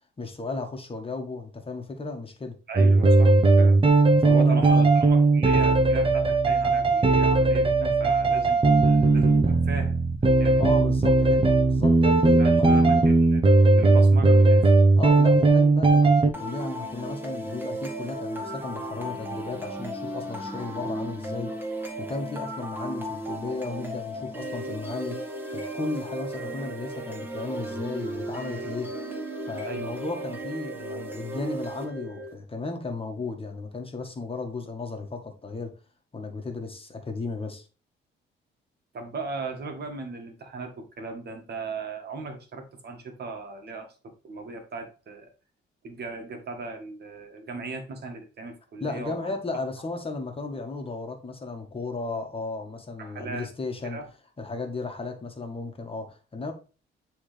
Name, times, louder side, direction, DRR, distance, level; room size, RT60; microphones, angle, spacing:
voice 1, 0.2-2.5 4.2-4.9 10.5-13.1 15.0-28.9 29.5-35.7 36.1-37.7 48.8-54.0 54.4-56.5, left 3 dB, 30° left, 1.5 m, -35 dB
voice 2, 2.7-3.8 4.3-10.0 10.2-10.6 12.4-14.7 29.7-30.0 38.9-43.9 44.2-45.3 45.8-49.4 53.0-53.5 53.8-54.1, right 3 dB, 55° right, 1.7 m, -37 dB
sound 1, 2.8-16.3, right 3 dB, 25° right, 1.0 m, -18 dB
sound 2, 16.3-32.3, right 1 dB, 10° right, 1.8 m, -35 dB
9.8 x 3.5 x 3.4 m
cardioid pair, 90°, 20 cm